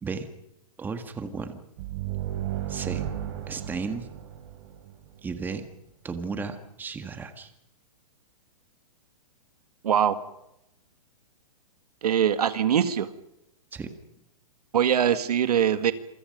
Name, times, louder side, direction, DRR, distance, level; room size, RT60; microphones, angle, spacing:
voice 1, 0.8-1.6 2.7-3.0 3.5-4.1 5.2-5.6 6.0-7.5 13.7-13.9, right 5 dB, 10° right, 8 dB, 1.7 m, -34 dB
sound 1, 1.8-5.4, right 12 dB, 40° right, 4.2 m, -34 dB
voice 2, 9.8-10.2 12.0-13.1 14.7-15.9, right 9 dB, 80° right, 11 dB, 2.0 m, -22 dB
27.5 x 25.0 x 5.4 m, 0.83 s
hypercardioid pair, 155°, 19 cm